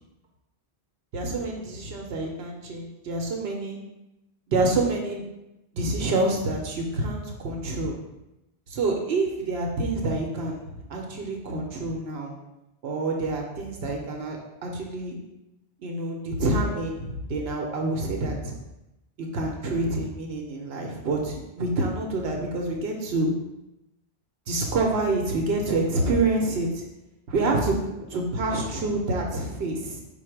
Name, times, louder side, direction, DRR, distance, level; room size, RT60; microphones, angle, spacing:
voice 1, 1.1-3.8 4.5-5.2 5.7-8.0 8.7-12.3 12.8-15.2 15.8-18.5 19.2-23.3 24.5-26.8 27.3-30.0, right 2 dB, 75° right, 1 dB, 0.9 m, -27 dB
4.6 x 2.1 x 4.4 m, 0.92 s
omnidirectional pair, 1.1 m